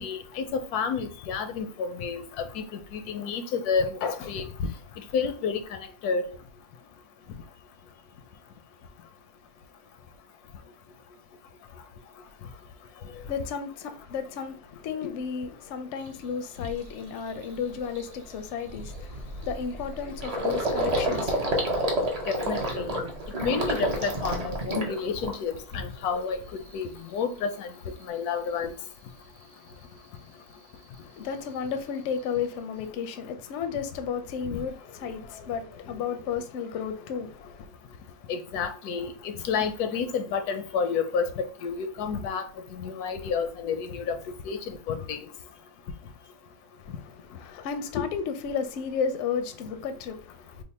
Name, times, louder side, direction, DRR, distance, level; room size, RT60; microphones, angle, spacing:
voice 1, 0.0-2.6 2.9-4.7 5.1-5.6 6.0-6.3 22.3-23.0 23.4-26.4 26.7-27.7 28.1-28.7 34.5-34.6 38.3-44.2 44.4-45.3, left 5 dB, 85° left, 1.1 m, -30 dB
voice 2, 13.2-21.5 31.0-37.7 46.8-50.6, left 6 dB, 65° left, 0.7 m, -33 dB
Gurgling, 16.1-16.2 16.6-16.9 17.3-17.4 17.7-25.7 26.1-26.7, right 1 dB, 40° right, 0.5 m, -30 dB
3.3 x 2.0 x 4.1 m
omnidirectional pair, 1.6 m